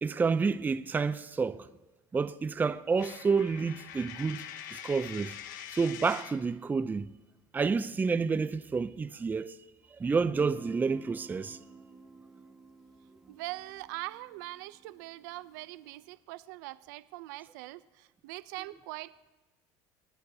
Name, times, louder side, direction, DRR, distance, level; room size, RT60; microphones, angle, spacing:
voice 1, 0.0-1.7 2.1-4.4 4.7-5.4 5.7-7.1 7.5-9.5 10.0-11.6, right 5 dB, 20° right, 0.5 m, -29 dB
Coin (dropping), 3.0-6.5, left 10 dB, 90° left, 0.7 m, -44 dB
Guitar, 10.3-15.9, right 2 dB, ahead, 1.5 m, -52 dB
voice 2, 13.3-19.3, right 18 dB, 85° right, 0.5 m, -42 dB
27.5 x 9.2 x 2.8 m
supercardioid pair, 100°, 10 cm